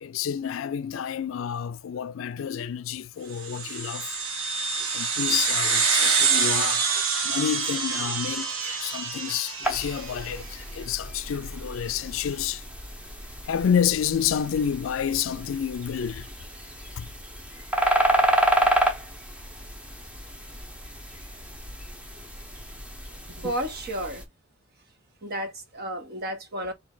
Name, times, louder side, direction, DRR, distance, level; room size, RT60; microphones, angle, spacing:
voice 1, 0.0-4.2 4.9-12.6 13.4-16.3 17.0-17.1, left 8 dB, 70° left, 0.4 m, -29 dB
sound 1, 3.4-10.2, right 5 dB, 85° right, 1.4 m, -26 dB
sound 2, 9.6-24.2, right 1 dB, 5° right, 0.9 m, -30 dB
voice 2, 23.4-24.2 25.2-26.7, right 1 dB, 50° right, 1.3 m, -32 dB
3.8 x 3.2 x 3.9 m
head